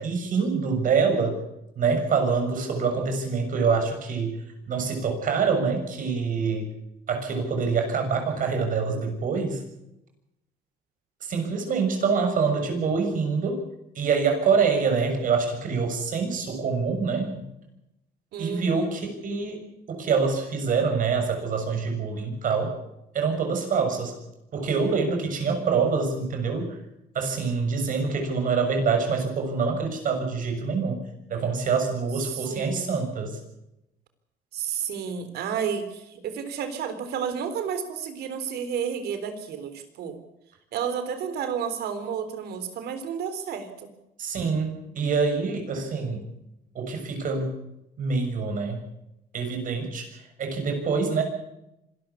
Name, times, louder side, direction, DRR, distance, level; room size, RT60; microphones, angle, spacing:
voice 1, 0.0-1.4 1.8-4.4 4.7-6.7 7.1-9.6 11.2-13.6 14.0-17.3 18.4-22.8 23.1-24.1 24.5-26.8 27.2-31.0 31.3-33.4 44.2-46.2 46.8-47.5 48.0-48.8 49.3-51.2, right 5 dB, 50° right, 5 dB, 6.8 m, -25 dB
voice 2, 18.3-18.9 25.5-25.7 32.3-33.0 34.5-40.2 40.7-43.7, right 7 dB, 70° right, 9 dB, 3.8 m, -31 dB
25.5 x 13.5 x 8.4 m, 0.87 s
cardioid pair, 110°, 17 cm